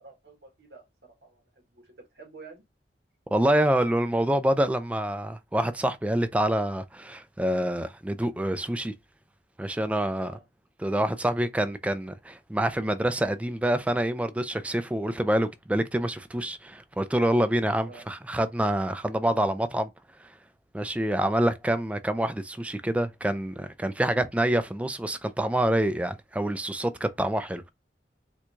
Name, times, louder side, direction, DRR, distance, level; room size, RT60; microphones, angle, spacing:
voice 1, 0.0-1.4 1.7-2.6 10.2-10.4 17.9-18.0, right 4 dB, 75° right, 1.1 m, -49 dB
voice 2, 3.3-8.9 9.6-10.3 10.8-19.9 20.7-27.7, right 1 dB, 10° right, 0.3 m, -26 dB
4.5 x 2.2 x 2.6 m
head